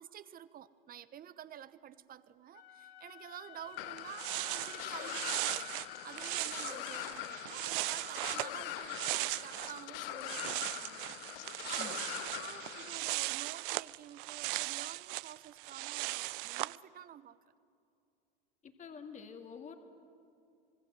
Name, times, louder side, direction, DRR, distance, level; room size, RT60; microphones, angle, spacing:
voice 1, 0.0-11.1 11.7-17.4, right 10 dB, 30° right, 16 dB, 1.0 m, -50 dB
Wind instrument woodwind instrument, 2.5-6.6, left 12 dB, 50° left, 3.1 m, -51 dB
sound 1, 3.7-3.8 4.0-9.8 10.1-16.8, right 21 dB, 60° right, 0.6 m, -38 dB
sound 2, 3.8-13.0, left 17 dB, 75° left, 0.6 m, -43 dB
voice 2, 18.6-19.7, left 6 dB, 25° left, 5 dB, 2.1 m, -47 dB
26.0 x 20.5 x 7.7 m, 2.5 s
hypercardioid pair, 100°, 29 cm